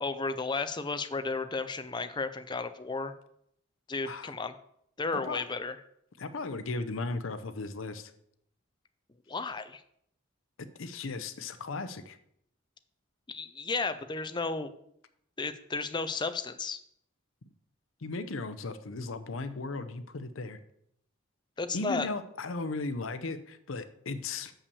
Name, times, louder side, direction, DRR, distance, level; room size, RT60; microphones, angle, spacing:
voice 1, 0.0-3.1 3.9-4.5 5.0-5.8 9.3-9.8 13.3-14.7 15.4-16.8 21.6-22.1, left 3 dB, 20° left, 10 dB, 0.6 m, -33 dB
voice 2, 5.1-5.4 6.2-8.1 10.8-12.2 18.0-20.6 21.7-24.5, left 3 dB, 70° left, 11 dB, 0.7 m, -36 dB
6.8 x 5.7 x 7.0 m, 0.71 s
head